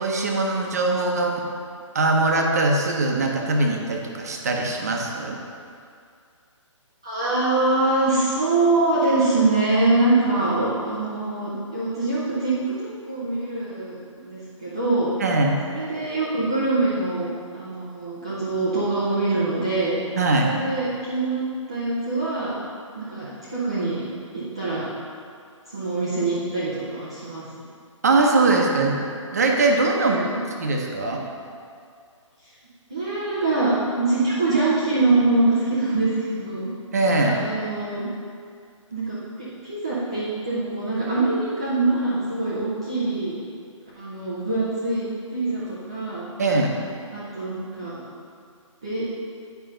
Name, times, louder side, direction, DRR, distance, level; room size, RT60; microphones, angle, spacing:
voice 1, 0.0-1.4 1.9-5.4 15.2-15.6 20.2-20.5 28.0-30.2 30.6-31.2 36.9-37.4 46.4-46.8, right 2 dB, 30° right, 1 dB, 0.7 m, -21 dB
voice 2, 7.0-15.1 15.6-17.3 17.5-20.0 20.4-22.6 22.9-24.0 24.3-24.9 25.7-27.5 30.0-30.4 32.9-36.7 37.2-38.0 38.9-39.2 39.6-43.4 44.0-46.3 47.1-48.0 48.8-49.0, right 2 dB, 10° right, -10 dB, 0.4 m, -24 dB
9.2 x 5.5 x 3.8 m, 2.3 s
hypercardioid pair, 175°, 17 cm